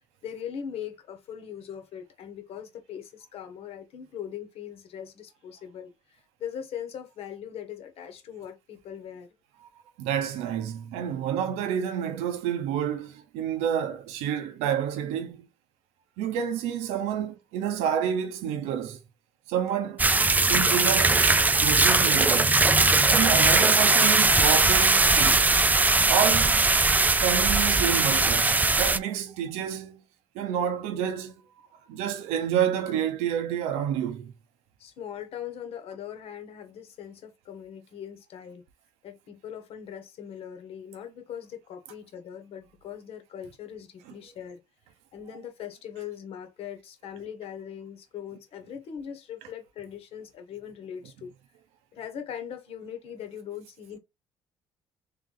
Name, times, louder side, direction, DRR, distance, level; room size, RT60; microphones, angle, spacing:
voice 1, 0.2-9.3 34.8-38.6 39.0-44.6 45.1-51.3 51.9-54.0, left 9 dB, 65° left, 1.2 m, -40 dB
voice 2, 10.0-15.5 16.2-19.0 19.5-20.1 20.5-21.3 21.6-22.6 23.1-25.5 26.1-26.6 27.2-30.0 30.3-31.4 31.9-34.3, right 9 dB, 90° right, 0.8 m, -29 dB
sound 1, 20.0-29.0, right 3 dB, 15° right, 0.4 m, -20 dB
3.4 x 3.2 x 3.8 m
supercardioid pair, 80°, 11 cm